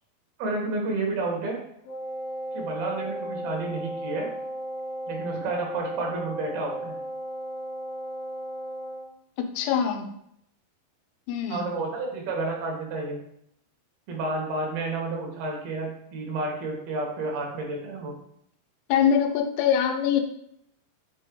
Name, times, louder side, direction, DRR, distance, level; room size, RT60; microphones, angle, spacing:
voice 1, 0.4-1.6 2.5-4.3 5.1-7.0 11.5-13.2 14.1-18.1, right 2 dB, 75° right, 0 dB, 3.1 m, -30 dB
Wind instrument woodwind instrument, 1.8-9.1, right 1 dB, 65° left, 2.1 m, -35 dB
voice 2, 9.4-10.1 11.3-11.7 18.9-20.2, left 8 dB, 90° left, 5 dB, 2.7 m, -23 dB
7.0 x 3.7 x 3.7 m, 0.72 s
omnidirectional pair, 4.5 m